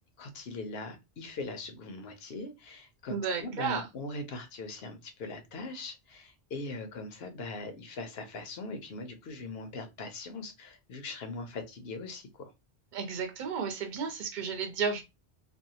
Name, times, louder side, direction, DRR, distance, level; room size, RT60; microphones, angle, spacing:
voice 1, 0.2-12.5, left 3 dB, 75° left, 0.9 m, -41 dB
voice 2, 3.1-3.9 12.9-15.0, right 6 dB, 55° right, 0.7 m, -33 dB
2.6 x 2.1 x 2.7 m
omnidirectional pair, 1.1 m